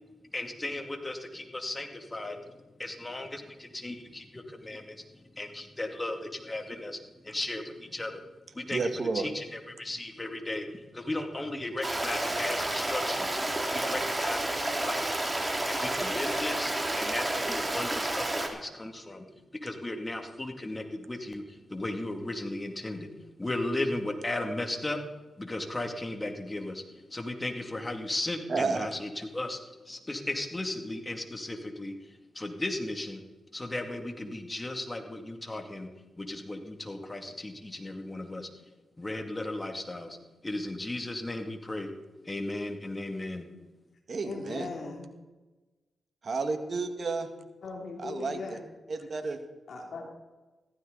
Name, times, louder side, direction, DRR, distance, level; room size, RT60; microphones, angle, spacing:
voice 1, 0.3-8.2 8.5-8.8 9.1-13.4 13.7-15.3 15.7-19.3 19.6-23.1 23.4-25.0 25.4-26.8 27.1-29.6 29.9-31.9 32.3-33.2 33.5-35.9 36.2-38.5 39.0-40.2 40.4-41.9 42.2-43.5, left 2 dB, 25° left, 5 dB, 2.4 m, -36 dB
voice 2, 8.7-9.3 28.5-28.9 44.1-44.7 46.2-47.3 48.0-48.6 48.9-49.4, right 4 dB, 55° right, 7 dB, 1.9 m, -31 dB
Stream, 11.8-18.5, right 1 dB, 20° right, 2.6 m, -30 dB
voice 3, 44.2-45.1 47.6-48.6 49.7-50.1, left 3 dB, 65° left, 2 dB, 2.8 m, -39 dB
15.5 x 14.0 x 4.0 m, 1.1 s
supercardioid pair, 45°, 0 cm